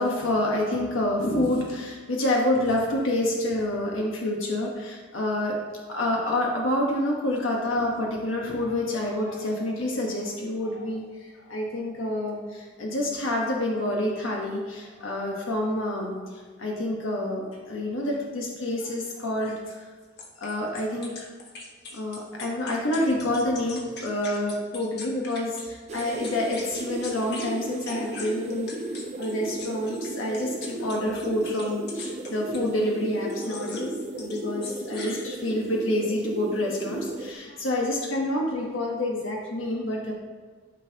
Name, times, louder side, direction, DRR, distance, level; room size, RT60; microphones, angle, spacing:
voice 1, 0.0-5.6 5.9-11.0 11.5-16.2 16.6-19.8 20.4-21.2 21.9-28.7 29.2-40.1, left 1 dB, 85° left, -2 dB, 1.3 m, -28 dB
sound 1, 20.2-25.7 26.0-27.5 27.8-32.7 33.3-33.9 34.2-35.7, left 3 dB, 55° left, 1.3 m, -41 dB
sound 2, 25.9-37.3, right 2 dB, 35° right, 0.5 m, -35 dB
12.5 x 5.5 x 2.9 m, 1.5 s
head